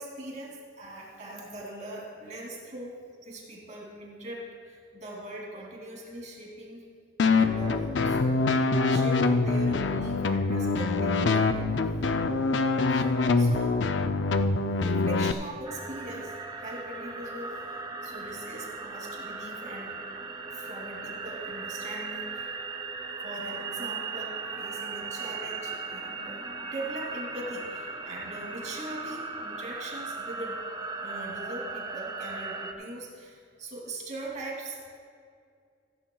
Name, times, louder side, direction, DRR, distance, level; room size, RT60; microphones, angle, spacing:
voice 1, 0.0-2.9 3.2-6.8 7.3-11.7 12.9-13.8 14.8-19.9 20.5-22.5 23.2-26.4 26.7-30.6 31.0-35.0, right 1 dB, 40° right, -3 dB, 2.8 m, -41 dB
sound 1, 7.2-15.3, left 3 dB, 70° left, 0.5 m, -25 dB
sound 2, 15.6-32.7, right 4 dB, 25° right, 0.7 m, -37 dB
15.0 x 15.0 x 2.3 m, 2.2 s
head